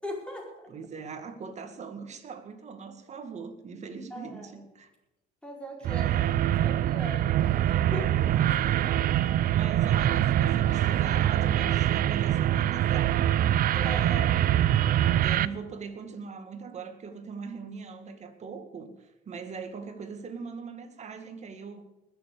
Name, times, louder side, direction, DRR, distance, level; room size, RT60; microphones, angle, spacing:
voice 1, 0.0-0.7 4.1-4.5 5.4-8.4 13.8-14.4 15.3-15.4, left 1 dB, 5° left, 0 dB, 4.8 m, -40 dB
voice 2, 0.7-4.9 5.8-6.4 8.3-9.0 9.5-13.3 13.7-14.6 15.2-21.9, right 5 dB, 40° right, 7 dB, 2.2 m, -41 dB
sound 1, 5.8-15.5, right 12 dB, 60° right, 0.6 m, -24 dB
20.5 x 7.2 x 6.9 m, 0.98 s
cardioid pair, 110°, 17 cm